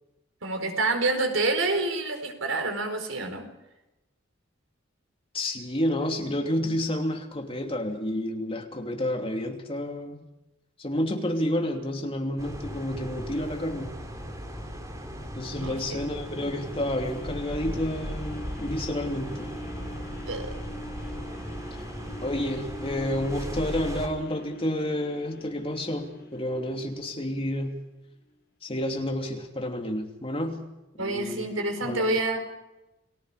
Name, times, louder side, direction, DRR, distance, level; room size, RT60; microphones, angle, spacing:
voice 1, 0.4-3.5 15.6-16.0 20.2-20.5 31.0-32.4, right 2 dB, 85° right, 6 dB, 4.5 m, -27 dB
voice 2, 5.3-10.3 10.8-13.9 15.3-19.5 22.2-27.8 28.6-30.7 31.0-31.5 31.8-32.2, left 1 dB, 30° left, 3 dB, 3.0 m, -30 dB
sound 1, 12.4-24.1, equal, 15° right, 3.7 m, -37 dB
sound 2, 15.7-27.8 28.3-28.4, left 1 dB, 50° left, 7.9 m, -43 dB
29.5 x 19.5 x 5.0 m, 1.0 s
head